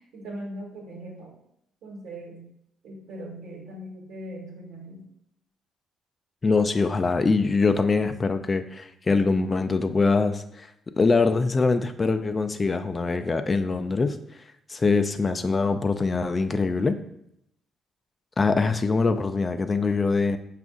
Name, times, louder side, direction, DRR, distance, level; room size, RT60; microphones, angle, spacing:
voice 1, 0.0-1.4 1.8-2.5 2.8-5.1, right 1 dB, 75° right, 0 dB, 1.2 m, -40 dB
voice 2, 6.4-10.7 11.0-14.2 14.7-17.0 18.4-20.4, left 4 dB, 30° left, 8 dB, 0.3 m, -23 dB
5.0 x 2.4 x 3.7 m, 0.75 s
cardioid pair, 90°, 0 cm